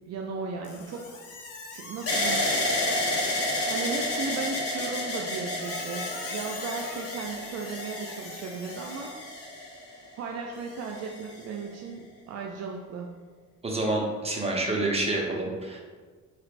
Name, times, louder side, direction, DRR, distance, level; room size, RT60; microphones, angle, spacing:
voice 1, 0.1-1.1 1.7-2.5 3.7-9.1 10.2-13.1, right 4 dB, 60° right, 0 dB, 0.4 m, -36 dB
Squeak, 0.6-3.4 5.6-9.1, left 4 dB, 80° left, 0.7 m, -44 dB
sound 1, 2.1-10.1 10.8-11.4, left 1 dB, 50° left, 1.2 m, -30 dB
voice 2, 13.6-15.8, right 2 dB, 20° right, -1 dB, 0.8 m, -28 dB
3.9 x 3.2 x 2.4 m, 1.5 s
cardioid pair, 90°, 30 cm